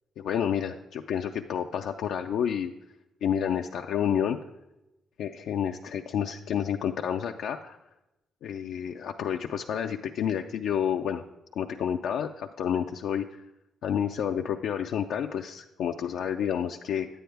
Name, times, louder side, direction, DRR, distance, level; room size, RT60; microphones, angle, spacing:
voice 1, 0.2-2.7 3.2-4.4 5.2-7.8 8.4-11.2 11.6-13.3 13.8-17.1, left 8 dB, 75° left, 3 dB, 0.4 m, -29 dB
9.2 x 9.2 x 3.4 m, 0.94 s
cardioid pair, 90°, 0 cm